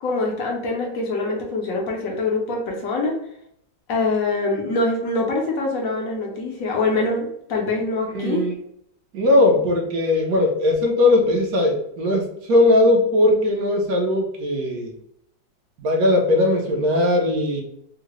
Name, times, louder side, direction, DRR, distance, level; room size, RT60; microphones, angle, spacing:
voice 1, 0.0-3.2 3.9-8.4, left 3 dB, 65° left, -1 dB, 0.9 m, -24 dB
voice 2, 8.1-8.5 9.1-14.9 15.8-17.6, left 2 dB, 65° right, 1 dB, 1.0 m, -19 dB
3.7 x 2.1 x 3.0 m, 0.73 s
omnidirectional pair, 2.0 m